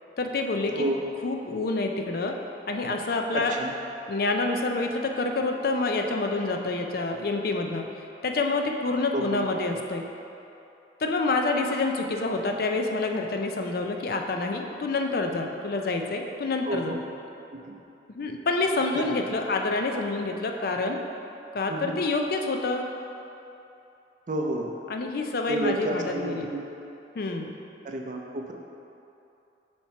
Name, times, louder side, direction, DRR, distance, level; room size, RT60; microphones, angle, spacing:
voice 1, 0.2-0.8 1.2-2.4 2.7-3.5 4.1-7.9 8.2-10.1 11.0-16.9 18.1-21.0 21.5-22.9 24.9-26.5 27.2-27.5, left 3 dB, 55° left, 3 dB, 0.4 m, -27 dB
voice 2, 0.7-1.0 3.3-3.7 9.1-9.4 16.7-17.0 17.5-17.7 18.9-19.2 21.7-22.0 24.3-24.8 25.5-26.6 27.8-28.5, right 1 dB, 45° right, 1 dB, 0.5 m, -30 dB
4.4 x 4.4 x 5.6 m, 2.8 s
head